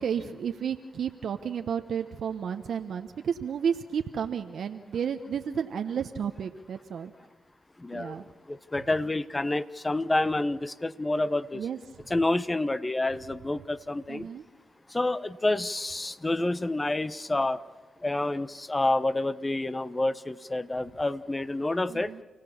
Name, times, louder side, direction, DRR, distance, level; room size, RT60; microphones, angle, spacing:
voice 1, 0.0-7.1 7.9-8.2 11.5-11.8 14.1-14.4 21.9-22.2, right 7 dB, 70° right, 6 dB, 0.9 m, -32 dB
voice 2, 7.8-11.6 12.1-14.3 14.9-17.6 18.0-22.1, left 2 dB, 25° left, 16 dB, 1.0 m, -28 dB
29.0 x 17.5 x 7.2 m, 1.3 s
supercardioid pair, 50°, 0 cm